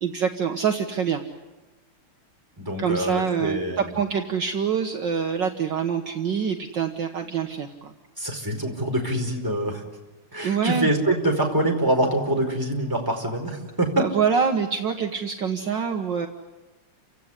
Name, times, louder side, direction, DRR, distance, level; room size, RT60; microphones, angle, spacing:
voice 1, 0.0-1.2 2.8-7.9 10.4-10.9 14.0-16.3, right 6 dB, 60° right, 4 dB, 1.9 m, -25 dB
voice 2, 2.6-3.9 8.2-9.8 10.3-13.9, right 1 dB, 10° right, 1 dB, 4.8 m, -25 dB
29.5 x 17.0 x 9.8 m, 1.2 s
omnidirectional pair, 2.4 m